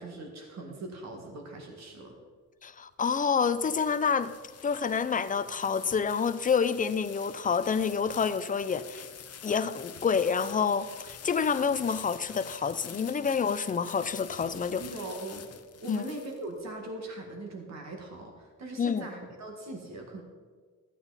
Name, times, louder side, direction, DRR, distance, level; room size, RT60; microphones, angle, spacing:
voice 1, 0.0-2.2 14.8-15.5 15.8-20.2, right 2 dB, 50° right, 2 dB, 1.9 m, -41 dB
voice 2, 2.6-4.3 4.6-9.1 9.4-14.8 15.9-16.1 18.8-19.1, left 6 dB, 25° left, 12 dB, 0.5 m, -28 dB
sound 1, 2.9-16.7, left 8 dB, 45° left, 0.9 m, -47 dB
14.0 x 8.8 x 4.1 m, 1.5 s
cardioid pair, 125°, 34 cm